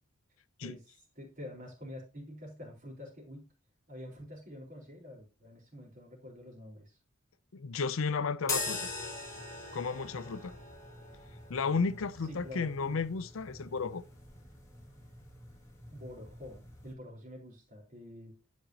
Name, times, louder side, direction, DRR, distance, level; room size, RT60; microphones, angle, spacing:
voice 1, 0.6-3.5 3.9-7.0 12.3-13.0 15.9-18.4, left 1 dB, 40° right, 4.2 m, -47 dB
voice 2, 7.5-8.9 9.7-10.5 11.5-14.0, left 4 dB, 80° left, 0.6 m, -33 dB
sound 1, 8.4-16.9, left 3 dB, 15° left, 2.2 m, -42 dB
12.5 x 5.3 x 2.9 m
head